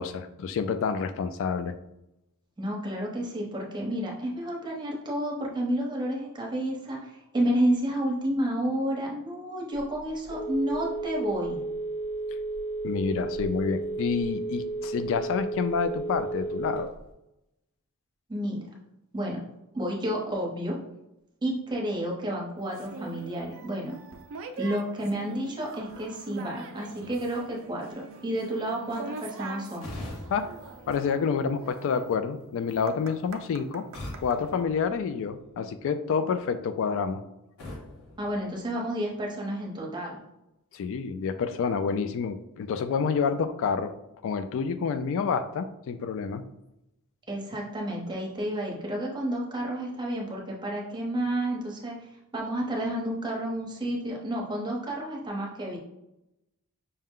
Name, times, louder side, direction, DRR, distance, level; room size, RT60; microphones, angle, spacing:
voice 1, 0.0-1.7 12.8-16.9 30.3-30.5 30.9-33.9 34.2-37.2 40.7-43.9 44.2-46.4, left 6 dB, 60° left, 11 dB, 0.3 m, -28 dB
voice 2, 2.6-11.6 18.3-18.6 19.1-19.4 19.7-20.8 21.4-24.0 24.6-29.9 38.2-40.2 47.3-52.0 52.3-55.8, right 1 dB, 20° right, -2 dB, 0.9 m, -30 dB
Telephone, 9.7-17.1, right 2 dB, 45° left, 1.1 m, -33 dB
sound 1, 22.7-34.4, right 3 dB, 60° right, 0.4 m, -43 dB
sound 2, 29.8-31.8 33.9-35.6 37.6-39.2, left 1 dB, 85° left, 1.2 m, -43 dB
5.5 x 2.1 x 3.6 m, 0.89 s
head